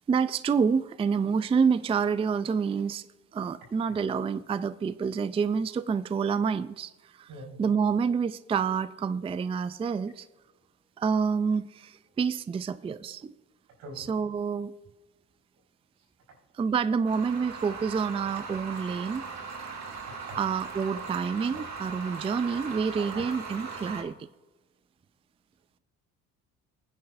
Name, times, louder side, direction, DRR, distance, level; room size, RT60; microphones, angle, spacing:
voice 1, 0.1-3.1 3.3-7.3 7.6-10.3 11.0-13.3 14.0-14.7 16.6-19.2 20.4-24.1, right 6 dB, 20° right, 0.4 m, -28 dB
voice 2, 7.3-7.7 13.8-14.4 16.0-16.1 20.0-20.4 21.5-21.6 23.0-23.2, right 2 dB, 85° right, 4.5 m, -45 dB
sound 1, 17.1-24.0, right 4 dB, 60° right, 2.2 m, -39 dB
19.0 x 9.6 x 2.6 m
cardioid pair, 85°, 31 cm